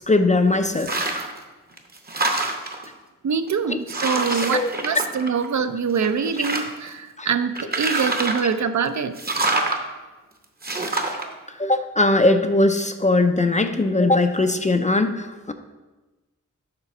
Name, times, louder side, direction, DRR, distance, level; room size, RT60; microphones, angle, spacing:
voice 1, 0.1-1.0 3.7-3.8 4.3-4.7 7.2-7.3 8.0-8.1 11.6-15.5, left 2 dB, 25° left, 7 dB, 0.4 m, -20 dB
sound 1, 0.7-1.4 1.8-2.9 3.5-3.6 3.9-5.6 6.0-6.9 7.6-8.5 9.2-9.8 10.6-11.2, right 2 dB, 30° right, 0.8 m, -26 dB
voice 2, 3.2-9.2, right 6 dB, 60° right, 10 dB, 0.4 m, -24 dB
6.7 x 3.9 x 6.0 m, 1.2 s
wide cardioid pair, 95°, 33 cm